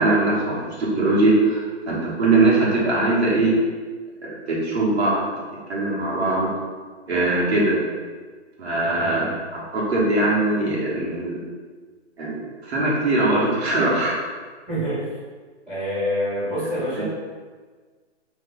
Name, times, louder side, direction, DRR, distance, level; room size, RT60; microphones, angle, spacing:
voice 1, 0.0-3.5 4.2-5.2 5.7-6.5 7.1-7.8 8.6-11.4 12.2-14.2, right 2 dB, 65° right, -6 dB, 1.3 m, -21 dB
voice 2, 8.8-9.3 14.7-15.0 15.7-17.1, equal, ahead, -29 dB, 0.5 m, -26 dB
3.1 x 2.4 x 3.9 m, 1.5 s
hypercardioid pair, 160°, 36 cm